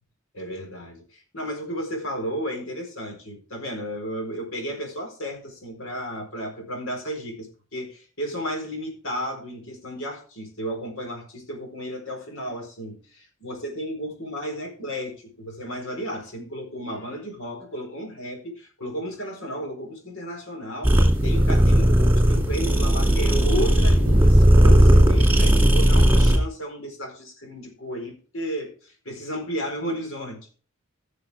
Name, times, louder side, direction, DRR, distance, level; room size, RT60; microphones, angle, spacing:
voice 1, 0.3-20.9 21.2-30.5, equal, 80° left, 3 dB, 4.3 m, -33 dB
sound 1, 20.8-26.4, equal, 10° right, 2.4 m, -16 dB
17.0 x 6.8 x 3.5 m, 0.38 s
head